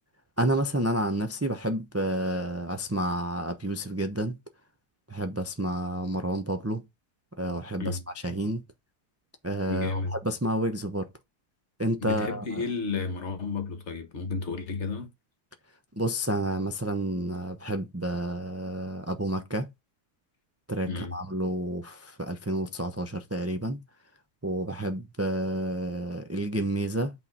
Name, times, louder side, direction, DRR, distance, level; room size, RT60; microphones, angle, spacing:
voice 1, 0.4-4.4 5.1-6.8 7.4-8.6 9.4-11.1 11.8-12.6 16.0-19.7 20.7-23.8 24.4-27.1, right 1 dB, 20° right, 0.3 m, -30 dB
voice 2, 9.6-10.1 12.0-15.1 20.9-21.1, left 4 dB, 50° left, 1.4 m, -32 dB
8.5 x 3.8 x 5.3 m
omnidirectional pair, 1.6 m